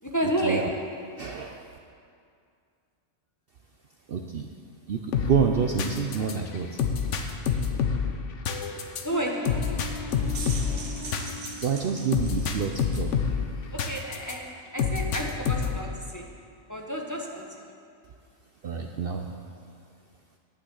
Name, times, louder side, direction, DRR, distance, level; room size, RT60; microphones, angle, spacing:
voice 1, 0.0-0.6 9.0-10.0 13.7-16.3 16.7-17.8, right 1 dB, 15° left, 0 dB, 0.9 m, -31 dB
voice 2, 1.2-1.7 4.1-4.5 4.9-6.8 11.6-13.1 18.6-19.4, right 7 dB, 55° right, 3 dB, 0.7 m, -28 dB
sound 1, 5.1-14.4 14.8-15.9, left 6 dB, 65° left, 1.1 m, -28 dB
sound 2, 10.1-13.1, right 4 dB, 75° right, 1.5 m, -41 dB
11.5 x 6.2 x 8.1 m, 2.3 s
omnidirectional pair, 1.4 m